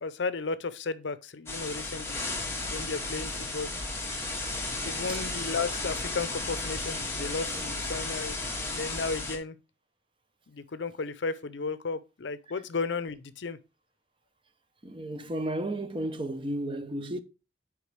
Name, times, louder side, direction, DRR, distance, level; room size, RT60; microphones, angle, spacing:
voice 1, 0.0-2.2 2.7-3.7 4.8-9.6 10.5-13.6, left 4 dB, 75° left, 0.6 m, -34 dB
sound 1, 1.5-9.4, left 2 dB, 15° left, 1.5 m, -34 dB
voice 2, 5.0-5.3 7.6-7.7 14.8-17.2, right 1 dB, 25° right, 0.7 m, -33 dB
8.2 x 4.9 x 3.3 m
head